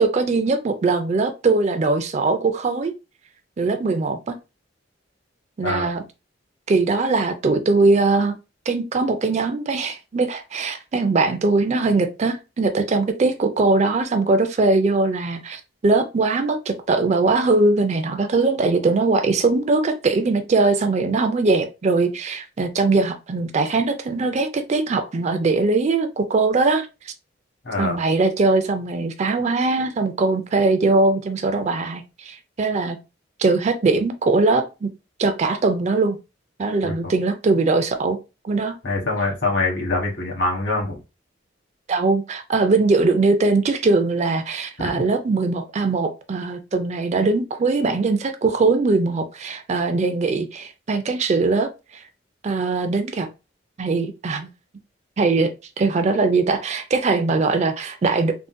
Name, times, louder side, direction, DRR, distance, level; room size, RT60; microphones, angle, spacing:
voice 1, 0.0-2.9 3.6-4.4 5.6-6.0 6.7-8.3 8.7-27.1 27.8-33.0 33.4-34.9 35.2-36.2 36.6-38.2 38.4-38.8 41.9-52.0 52.4-53.3 53.8-54.5 55.2-55.5 55.8-58.5, right 3 dB, 35° right, 0.3 m, -21 dB
voice 2, 27.6-28.0 36.8-37.1 38.8-41.0 44.8-44.9, left 2 dB, 60° left, 1.2 m, -24 dB
3.6 x 2.1 x 2.5 m
head